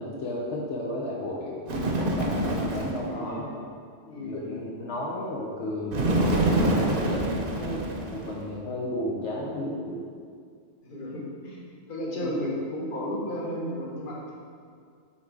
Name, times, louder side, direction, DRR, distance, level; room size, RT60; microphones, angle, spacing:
voice 1, 0.0-3.5 4.2-10.0 12.2-12.5, left 1 dB, 75° left, -4 dB, 1.0 m, -33 dB
Bird, 1.7-3.1 5.9-8.4, right 2 dB, 55° right, 0.9 m, -26 dB
voice 2, 3.1-3.4 4.1-4.5 10.8-11.6 11.9-14.4, equal, 50° left, -4 dB, 1.2 m, -33 dB
5.8 x 3.8 x 4.6 m, 2.2 s
omnidirectional pair, 1.2 m